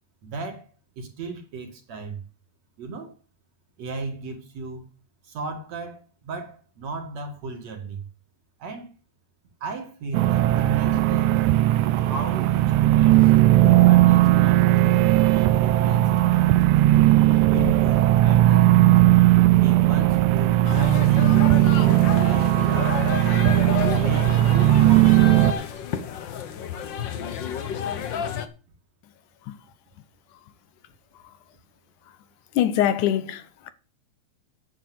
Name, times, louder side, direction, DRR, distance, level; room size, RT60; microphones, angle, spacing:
voice 1, 0.2-0.7 1.0-2.2 2.8-3.1 3.8-4.9 5.2-8.1 8.6-8.9 9.6-11.5 12.0-14.9 15.3-16.1 17.5-18.7 19.5-23.6 24.0-25.8, right 3 dB, 60° right, 3.4 m, -35 dB
sound 1, 10.1-25.5, right 15 dB, 80° right, 2.1 m, -17 dB
sound 2, 20.6-28.5, left 8 dB, 65° left, 1.1 m, -30 dB
voice 2, 32.5-33.7, left 11 dB, 85° left, 2.5 m, -23 dB
9.9 x 6.9 x 7.8 m
omnidirectional pair, 3.4 m